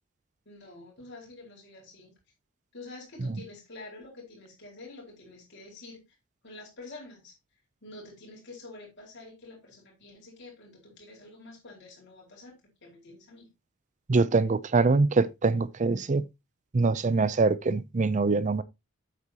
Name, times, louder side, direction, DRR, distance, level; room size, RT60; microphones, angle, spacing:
voice 1, 0.4-2.1 2.7-6.0 6.4-7.3 7.8-13.5, left 2 dB, 50° left, 4.6 m, -47 dB
voice 2, 14.1-16.2 16.7-18.6, right 3 dB, 35° right, 0.5 m, -24 dB
8.5 x 8.3 x 2.9 m
head